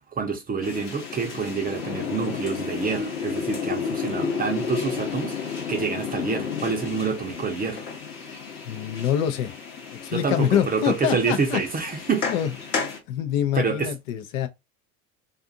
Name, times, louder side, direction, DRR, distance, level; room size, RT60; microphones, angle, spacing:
voice 1, 0.1-7.8 10.1-12.3 13.5-13.9, right 5 dB, 20° right, 0.6 m, -27 dB
sound 1, 0.6-13.0, left 5 dB, 90° left, 1.0 m, -32 dB
voice 2, 8.7-9.5 10.0-11.6 12.3-12.5 13.1-14.5, left 10 dB, 60° left, 0.6 m, -25 dB
2.5 x 2.5 x 2.6 m
hypercardioid pair, 80°, 45 cm